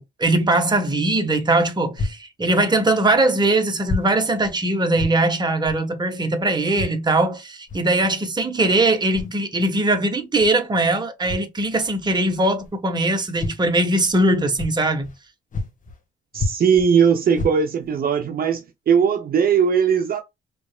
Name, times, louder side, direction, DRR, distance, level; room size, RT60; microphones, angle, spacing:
voice 1, 0.0-15.1, right 2 dB, 20° right, 1.1 m, -21 dB
sound 1, 1.9-2.2 3.0-3.1 3.8-4.1 4.4-4.6 4.9-5.2 5.6-5.8 6.7-7.0 7.7-7.9 9.0-9.4 10.4-10.5 11.2-11.5 12.6-12.7 13.4-13.6 14.0-14.2 14.5-15.2 15.5-16.0 16.3-16.9 17.3-17.9 18.4-18.5 19.0-19.1, left 2 dB, 40° left, 1.4 m, -29 dB
voice 2, 16.3-20.2, right 7 dB, 50° right, 0.6 m, -19 dB
5.1 x 3.1 x 2.2 m
cardioid pair, 90°, 20 cm